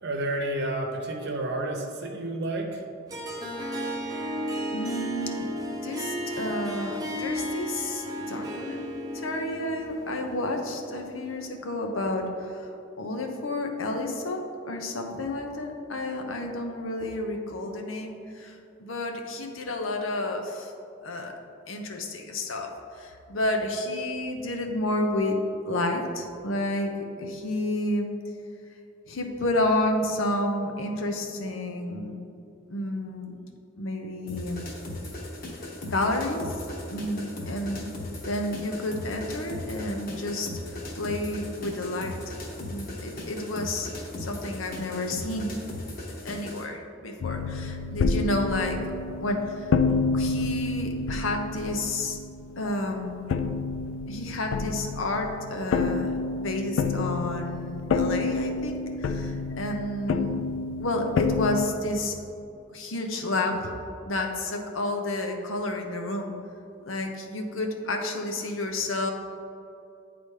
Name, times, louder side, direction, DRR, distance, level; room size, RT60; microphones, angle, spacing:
voice 1, 0.0-2.8, right 1 dB, 60° right, 3 dB, 0.8 m, -30 dB
Harp, 3.1-11.5, equal, 20° right, 0.7 m, -34 dB
voice 2, 4.7-5.5 5.8-12.7 13.0-20.7 21.0-21.3 21.7-25.4 25.7-26.9 27.2-28.1 29.1-32.2 32.7-33.4 33.8-34.7 35.9-36.6 36.9-37.9 38.3-42.3 42.7-45.6 46.2-48.8 49.2-49.8 50.1-52.2 52.6-53.4 54.1-56.1 56.4-60.4 60.8-62.2 62.7-63.7 64.1-66.3 66.9-69.1, left 1 dB, 90° left, 3 dB, 0.8 m, -30 dB
sound 1, 34.3-46.7, left 1 dB, 45° left, 1.0 m, -38 dB
sound 2, 47.2-52.9 53.3-61.7, left 4 dB, 75° left, 0.3 m, -29 dB
10.0 x 4.0 x 3.3 m, 2.6 s
head